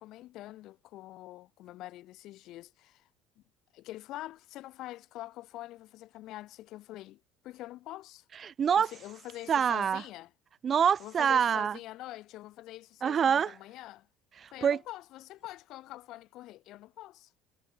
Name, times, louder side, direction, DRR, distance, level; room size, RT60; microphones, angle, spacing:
voice 1, 0.0-3.1 3.4-3.5 3.7-8.2 8.8-10.3 11.0-14.1 14.5-17.3, left 16 dB, 55° left, 7.9 m, -45 dB
voice 2, 8.4-8.9 9.5-10.0 10.6-11.8 13.0-13.5 14.4-14.8, right 7 dB, 30° right, 2.1 m, -26 dB
cardioid pair, 140°, 0 cm